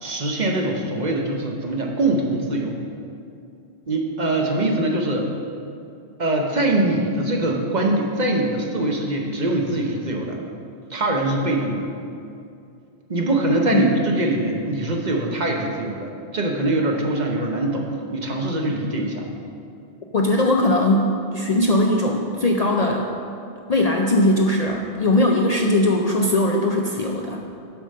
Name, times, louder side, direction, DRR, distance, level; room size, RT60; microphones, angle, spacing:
voice 1, 0.0-2.8 3.9-5.3 6.2-10.4 10.9-11.9 13.1-19.3, right 2 dB, 45° right, 1 dB, 0.9 m, -23 dB
voice 2, 20.1-23.1 23.7-27.4, left 1 dB, 50° left, 1 dB, 0.5 m, -19 dB
7.9 x 5.0 x 6.5 m, 2.5 s
omnidirectional pair, 1.1 m